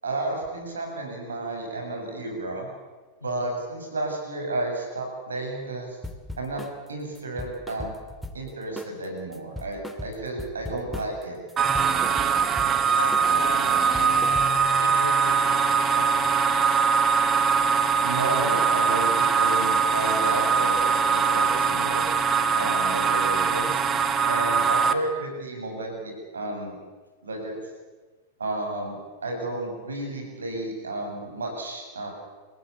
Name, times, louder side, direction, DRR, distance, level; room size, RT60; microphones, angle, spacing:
voice 1, 0.0-2.7 3.2-6.0 6.4-6.6 6.9-7.9 8.3-11.4 18.0-22.0 22.3-23.8 24.3-26.8 27.2-27.6 28.4-32.1, right 2 dB, 70° right, 2 dB, 7.7 m, -32 dB
sound 1, 6.0-6.8 7.2-8.5 8.8-9.1 9.3-11.2 11.5-12.8 13.1-13.4 13.7-14.7, left 2 dB, ahead, 2.3 m, -38 dB
sound 2, 11.6-24.9, right 6 dB, 25° right, 1.7 m, -22 dB
voice 2, 12.9-14.4 14.8-16.8, left 3 dB, 80° left, 6 dB, 3.5 m, -38 dB
29.5 x 16.5 x 8.6 m, 1.3 s
figure-of-eight pair, 90°, 0 cm